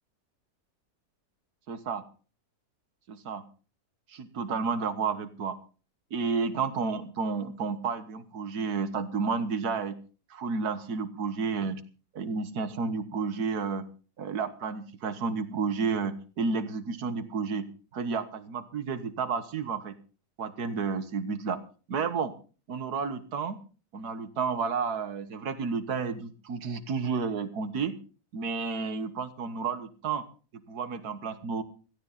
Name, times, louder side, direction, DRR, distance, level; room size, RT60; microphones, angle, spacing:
voice 1, 1.7-2.0 3.1-3.4 4.1-5.6 6.1-10.0 10.3-11.8 12.2-13.9 14.2-17.7 17.9-19.9 20.4-21.6 21.9-22.3 22.7-23.6 23.9-28.0 28.3-30.3 30.5-31.6, right 5 dB, 75° right, 11 dB, 1.8 m, -31 dB
16.5 x 15.0 x 4.0 m, 0.38 s
omnidirectional pair, 1.7 m